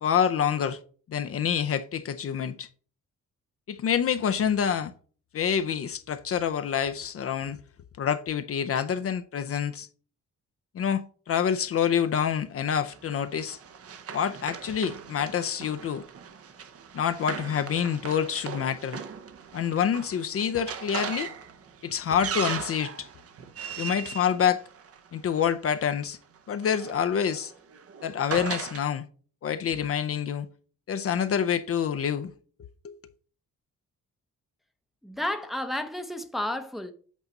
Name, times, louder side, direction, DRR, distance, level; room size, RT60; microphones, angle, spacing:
voice 1, 0.0-0.8 1.1-2.7 3.7-4.9 5.3-7.6 8.0-9.9 10.7-13.6 14.1-16.0 16.9-19.0 19.5-21.3 21.8-23.1 23.8-24.6 25.1-26.2 26.5-27.5 28.0-29.0 29.4-30.5 30.9-32.3 32.8-32.9, left 8 dB, 50° left, 0.5 m, -27 dB
Run, 12.7-25.4 26.4-28.8, right 7 dB, 50° right, 0.8 m, -39 dB
voice 2, 35.0-36.9, left 1 dB, ahead, 0.7 m, -31 dB
8.3 x 4.0 x 5.2 m
wide cardioid pair, 165°, 30 cm